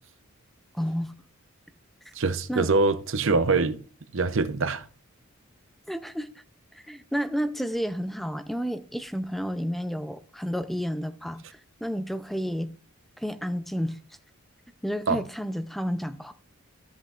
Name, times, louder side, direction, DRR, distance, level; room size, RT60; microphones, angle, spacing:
voice 1, 0.7-1.1 2.0-2.1 2.5-2.7 5.9-6.4 6.7-12.7 13.2-14.0 14.8-16.3, equal, ahead, 0.4 m, -31 dB
voice 2, 2.1-3.8 4.1-4.9 15.1-15.2, right 3 dB, 60° right, 0.7 m, -24 dB
13.5 x 8.0 x 2.4 m
head